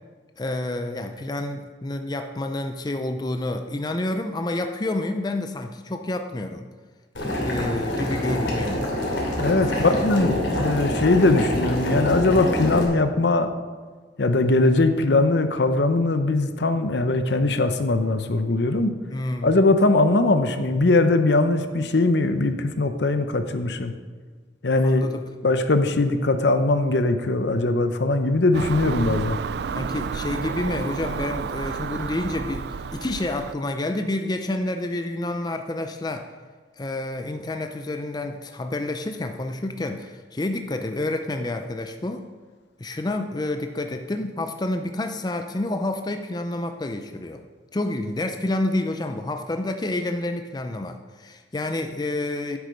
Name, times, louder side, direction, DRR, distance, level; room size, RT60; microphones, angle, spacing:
voice 1, 0.4-6.6 7.2-8.8 9.6-10.2 19.1-19.5 24.8-25.2 29.7-36.3 36.8-42.2 42.8-47.4 47.7-52.6, left 2 dB, 20° left, 6 dB, 0.5 m, -29 dB
Boiling, 7.1-12.8, left 1 dB, 85° left, 2.6 m, -26 dB
voice 2, 9.4-13.5 14.2-18.9 19.4-23.9 24.6-25.1 25.4-29.4, left 2 dB, 70° left, 9 dB, 0.8 m, -21 dB
Car passing by / Engine, 28.5-33.5, right 6 dB, 60° right, 0.3 m, -31 dB
9.6 x 8.2 x 5.2 m, 1.5 s
head